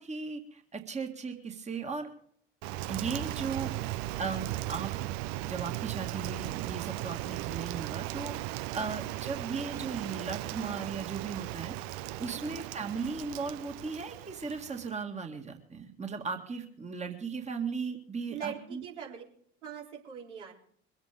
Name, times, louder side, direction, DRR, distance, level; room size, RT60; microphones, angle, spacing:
voice 1, 0.0-2.1 2.9-5.1 5.4-18.8, right 5 dB, 20° right, 5 dB, 2.0 m, -37 dB
Rain, 2.6-15.0, right 16 dB, 50° right, 0.7 m, -37 dB
voice 2, 12.4-12.7 18.3-19.2 19.6-20.5, right 8 dB, 75° right, -2 dB, 4.0 m, -41 dB
23.0 x 8.4 x 5.1 m, 0.62 s
figure-of-eight pair, 60°, 35 cm